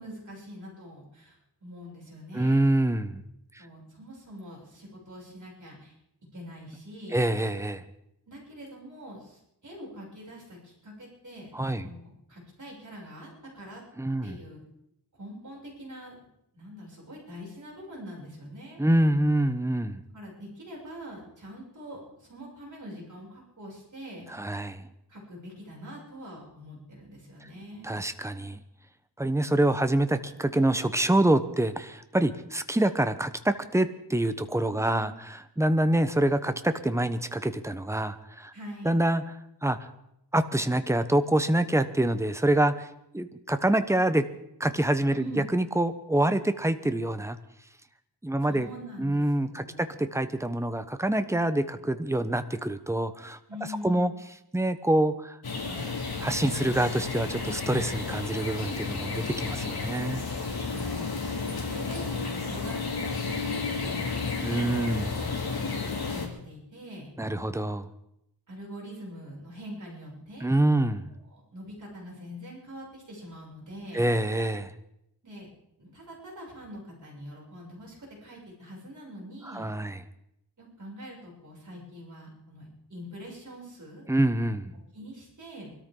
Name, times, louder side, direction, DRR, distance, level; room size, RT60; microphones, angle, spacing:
voice 1, 0.0-2.6 3.6-6.0 6.3-7.2 8.3-13.8 14.2-14.6 15.2-18.8 20.1-24.3 25.1-28.0 34.6-35.1 38.5-39.0 45.1-45.5 48.4-50.0 53.5-54.2 60.6-64.5 64.9-65.3 65.7-67.1 68.5-70.5 71.3-74.0 75.2-75.5 75.8-79.7 80.6-84.1 84.9-85.8, equal, 45° right, -4 dB, 7.0 m, -44 dB
voice 2, 2.3-3.2 3.5-3.6 7.1-7.9 11.5-11.9 14.0-14.4 18.8-20.0 24.3-24.8 27.8-28.6 29.2-38.5 38.8-39.2 39.6-39.8 40.3-42.9 43.1-44.3 44.6-47.4 48.2-48.7 49.0-53.4 53.8-54.1 54.5-55.4 55.7-55.9 56.2-60.2 64.4-65.1 67.2-67.9 70.4-71.0 73.9-74.7 79.5-80.0 84.1-84.7, right 1 dB, 5° right, 10 dB, 0.9 m, -26 dB
sound 1, 55.4-66.3, left 4 dB, 65° left, 2.5 m, -32 dB
24.0 x 13.5 x 3.9 m, 0.79 s
wide cardioid pair, 100°, 41 cm